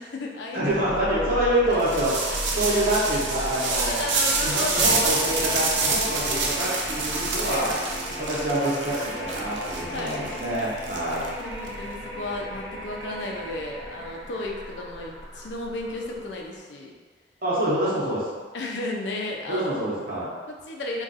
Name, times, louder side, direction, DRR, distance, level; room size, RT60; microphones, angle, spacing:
voice 1, 0.0-0.7 1.7-1.8 2.1-2.4 3.7-6.6 7.5-7.8 9.9-10.3 11.1-17.0 18.5-19.7 20.5-21.0, left 2 dB, 70° left, 0 dB, 0.5 m, -34 dB
voice 2, 0.5-2.2 2.5-4.1 4.4-7.7 8.2-11.3 17.4-18.4 19.5-20.3, right 1 dB, 55° right, -7 dB, 0.9 m, -26 dB
sound 1, 0.7-16.6, equal, ahead, 0.6 m, -37 dB
sound 2, 1.8-11.7, right 4 dB, 85° right, 0.5 m, -27 dB
sound 3, 2.2-10.4, left 1 dB, 35° left, 0.8 m, -39 dB
2.4 x 2.3 x 3.9 m, 1.5 s
head